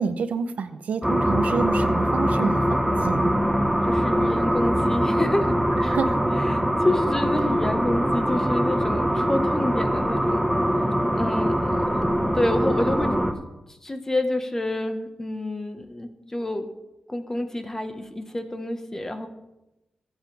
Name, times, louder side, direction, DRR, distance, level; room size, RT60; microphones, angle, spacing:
voice 1, 0.0-3.4 5.9-6.2, right 5 dB, 80° right, 11 dB, 0.8 m, -28 dB
sound 1, 1.0-13.3, equal, 5° right, 1.3 m, -23 dB
voice 2, 3.8-5.9 6.4-10.5 11.1-12.0 12.3-13.2 13.8-16.7 17.1-19.3, left 1 dB, 20° left, 6 dB, 1.4 m, -28 dB
22.5 x 8.2 x 3.5 m, 0.97 s
cardioid pair, 85°, 2 cm